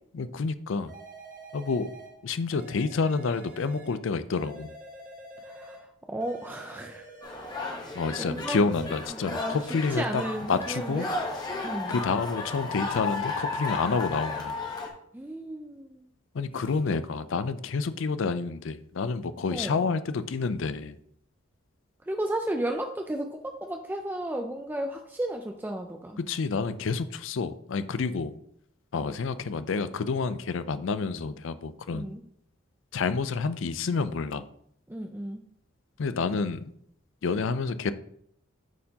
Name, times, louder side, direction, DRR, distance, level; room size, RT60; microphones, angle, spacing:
voice 1, 0.1-0.9 1.5-1.9 2.2-4.7 7.9-10.2 10.5-11.1 11.9-14.6 16.3-21.0 26.2-28.3 28.9-32.1 32.9-34.4 36.0-36.7 37.2-37.9, left 4 dB, 65° left, 13 dB, 0.4 m, -29 dB
sound 1, 0.9-2.2 2.5-4.0 4.4-5.9 6.2-7.7 8.0-9.1, right 2 dB, 40° right, 1.0 m, -46 dB
voice 2, 5.5-7.1 7.7-7.9 8.2-9.6 9.9-11.1 11.6-12.0 15.1-16.1 19.5-19.8 22.1-26.2 31.9-32.2 34.9-35.4, right 1 dB, 10° right, 4 dB, 0.4 m, -34 dB
sound 2, 7.2-14.9, left 3 dB, 20° left, 1.0 m, -34 dB
9.0 x 4.4 x 2.8 m, 0.71 s
head